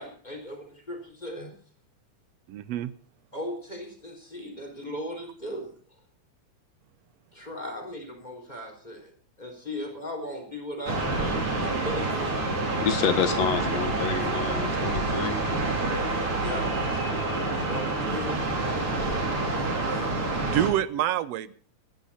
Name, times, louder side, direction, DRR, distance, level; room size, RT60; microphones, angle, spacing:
voice 1, 0.0-1.5 3.3-5.8 7.3-9.1 9.4-12.4 16.3-16.7 17.7-19.3, equal, 15° left, 2 dB, 3.9 m, -37 dB
voice 2, 2.5-2.9 20.5-21.5, right 12 dB, 70° right, 16 dB, 1.8 m, -26 dB
sound 1, 10.9-20.7, right 2 dB, 50° right, 4.3 m, -27 dB
voice 3, 12.8-15.4, left 8 dB, 65° left, 10 dB, 2.4 m, -28 dB
26.0 x 10.5 x 4.3 m, 0.42 s
omnidirectional pair, 3.3 m